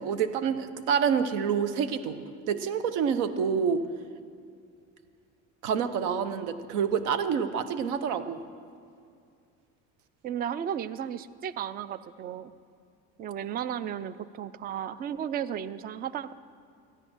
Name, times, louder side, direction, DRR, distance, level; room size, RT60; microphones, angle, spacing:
voice 1, 0.0-2.2 2.5-3.8 5.6-8.4, right 7 dB, 75° right, 11 dB, 0.8 m, -27 dB
voice 2, 10.2-12.5 13.2-16.3, right 9 dB, 30° right, 16 dB, 0.4 m, -34 dB
14.0 x 10.0 x 6.1 m, 2.3 s
cardioid pair, 135°, 30 cm